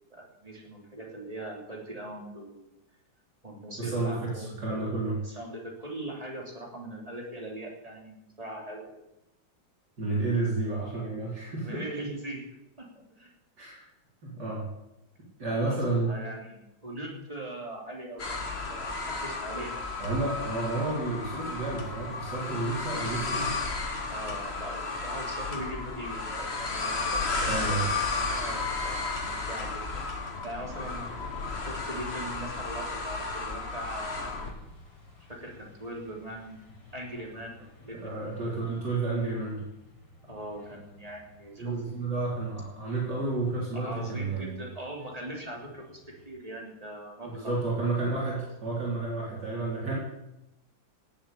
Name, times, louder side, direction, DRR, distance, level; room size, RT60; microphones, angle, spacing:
voice 1, 0.1-2.6 3.4-4.9 5.2-9.1 11.6-12.5 12.8-13.3 15.6-19.9 24.1-27.8 28.2-31.1 31.6-34.4 35.3-38.2 40.2-41.8 43.7-47.5, right 1 dB, 15° right, -1 dB, 3.4 m, -41 dB
voice 2, 3.8-5.2 10.0-11.8 13.6-13.8 14.2-14.7 15.4-16.1 20.0-23.6 27.5-27.8 38.0-39.6 41.6-44.5 47.2-49.9, right 3 dB, 55° right, -5 dB, 5.0 m, -31 dB
sound 1, 18.2-34.5, left 3 dB, 35° left, 1.9 m, -33 dB
sound 2, 27.2-46.3, left 3 dB, 60° left, 4.0 m, -54 dB
17.5 x 8.1 x 8.5 m, 0.91 s
omnidirectional pair, 2.2 m